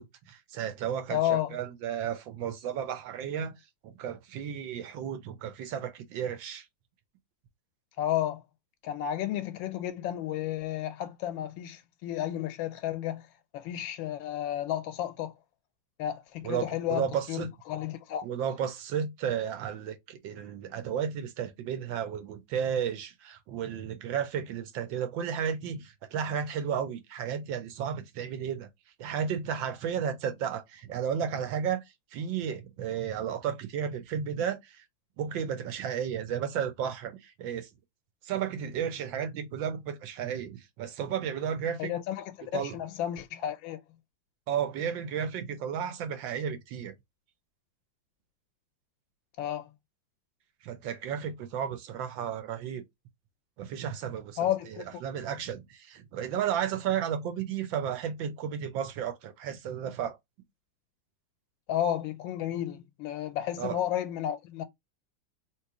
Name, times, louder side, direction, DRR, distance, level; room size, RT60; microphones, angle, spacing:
voice 1, 0.0-3.6 3.8-6.7 16.4-17.5 18.2-28.7 29.0-31.8 32.1-34.8 35.2-37.7 38.2-41.9 42.5-42.8 44.5-46.9 50.6-52.8 53.6-60.2 63.6-63.8, right 8 dB, 80° right, 1.4 m, -33 dB
voice 2, 1.1-1.5 8.0-8.4 8.8-13.3 13.5-15.3 16.0-18.2 41.8-43.8 49.4-49.7 54.4-54.9 61.7-64.6, left 11 dB, 90° left, 1.3 m, -32 dB
3.1 x 3.0 x 4.6 m
omnidirectional pair, 2.1 m